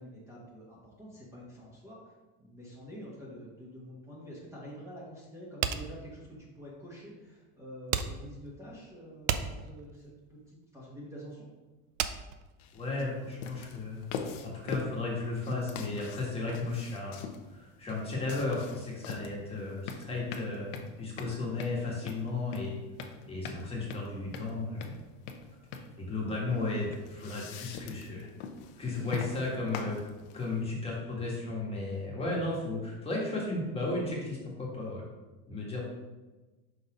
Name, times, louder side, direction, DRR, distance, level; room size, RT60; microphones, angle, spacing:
voice 1, 0.0-11.5, equal, 10° right, -6 dB, 1.3 m, -47 dB
sound 1, 5.6-13.3, right 9 dB, 55° right, 0.5 m, -35 dB
sound 2, 12.6-30.6, left 5 dB, 65° left, 0.8 m, -43 dB
voice 2, 12.7-14.1 14.6-17.2 17.5-20.7 21.0-22.7 23.3-24.9 26.0-28.3 28.8-30.0 30.3-35.0 35.5-35.8, left 2 dB, 15° left, -4 dB, 1.5 m, -34 dB
5.4 x 4.1 x 4.9 m, 1.2 s
supercardioid pair, 140°, 33 cm